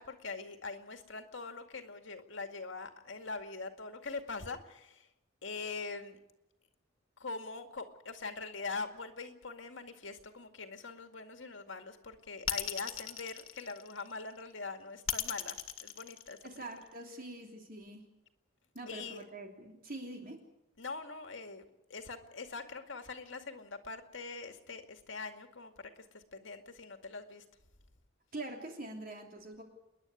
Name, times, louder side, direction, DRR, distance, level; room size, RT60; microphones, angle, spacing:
voice 1, 0.0-5.1 5.4-6.2 7.2-16.7 18.9-19.2 20.8-21.6 21.9-27.4, left 4 dB, 70° left, 6 dB, 2.2 m, -43 dB
sound 1, 12.5-14.2 15.1-16.8, left 11 dB, 85° left, 1.6 m, -36 dB
voice 2, 16.4-18.0 18.7-20.4 28.3-29.6, right 2 dB, 45° right, 2 dB, 3.2 m, -44 dB
28.5 x 11.0 x 9.6 m, 0.92 s
head